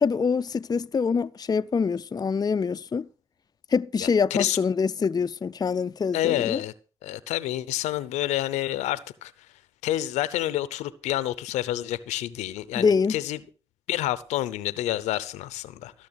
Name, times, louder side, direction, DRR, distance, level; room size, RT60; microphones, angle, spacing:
voice 1, 0.0-3.1 3.7-6.6 12.8-13.1, left 5 dB, 35° left, 0.5 m, -25 dB
voice 2, 4.0-4.6 6.1-6.7 7.0-9.3 9.8-13.4 13.9-15.9, left 14 dB, 85° left, 0.7 m, -28 dB
15.5 x 6.5 x 6.3 m
supercardioid pair, 45°, 11 cm